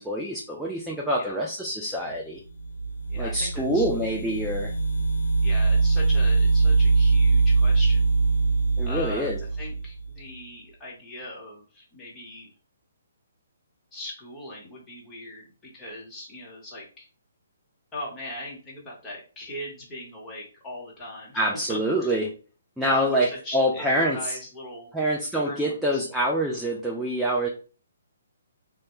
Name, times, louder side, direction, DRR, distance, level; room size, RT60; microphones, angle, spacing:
voice 1, 0.0-2.4 3.1-4.7 8.8-9.4 21.4-22.3 22.8-24.4 24.9-27.5, equal, 5° right, -2 dB, 0.3 m, -26 dB
sound 1, 2.6-10.1, right 4 dB, 85° left, 0.4 m, -22 dB
voice 2, 3.1-3.9 5.4-8.1 8.8-12.5 13.9-17.1 17.9-22.1 22.8-25.0 25.4-26.0, left 1 dB, 15° left, -4 dB, 0.9 m, -39 dB
2.1 x 2.1 x 3.0 m, 0.37 s
hypercardioid pair, 155°, 0 cm